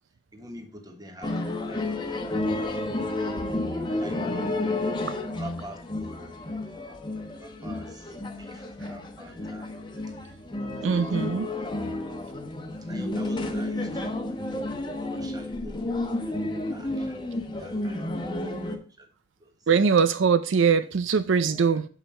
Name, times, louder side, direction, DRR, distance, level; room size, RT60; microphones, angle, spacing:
voice 1, 0.3-2.1 2.5-2.8 3.6-3.7 4.0-4.4 5.4-6.4 7.3-9.7 10.7-11.4 12.5-14.3 15.0-16.4 16.7-19.1 19.4-19.7 21.5-21.8, equal, 20° right, 1.3 m, -47 dB
sound 1, 1.2-18.8, left 2 dB, 25° left, 1.0 m, -31 dB
voice 2, 10.8-11.5 19.7-21.9, right 6 dB, 80° right, 0.5 m, -22 dB
7.2 x 5.6 x 4.2 m
head